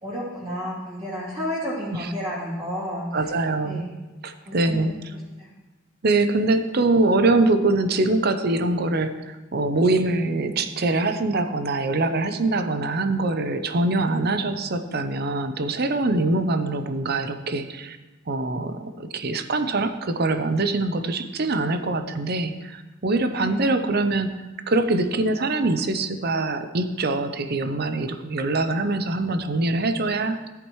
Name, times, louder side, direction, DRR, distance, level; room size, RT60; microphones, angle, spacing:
voice 1, 0.0-3.3 3.6-3.9 4.4-4.7 5.1-5.5 23.3-23.7, equal, 30° right, -8 dB, 3.1 m, -31 dB
voice 2, 3.1-3.9 4.2-4.9 6.0-18.0 18.3-24.3 24.7-30.4, right 2 dB, 50° right, 9 dB, 0.7 m, -23 dB
14.5 x 8.6 x 3.2 m, 1.1 s
head